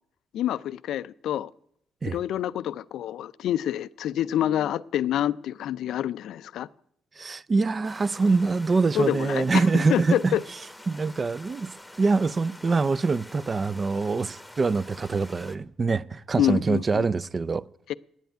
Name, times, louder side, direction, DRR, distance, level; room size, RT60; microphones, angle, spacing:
voice 1, 0.3-1.5 2.0-6.7 8.9-10.4 16.4-17.0 17.9-18.0, left 11 dB, 80° left, 0.4 m, -27 dB
voice 2, 7.2-10.4 10.9-17.6, right 4 dB, 35° right, 0.4 m, -24 dB
sound 1, 7.8-15.6, left 1 dB, 5° left, 1.1 m, -47 dB
9.3 x 9.1 x 9.1 m
cardioid pair, 90°, 0 cm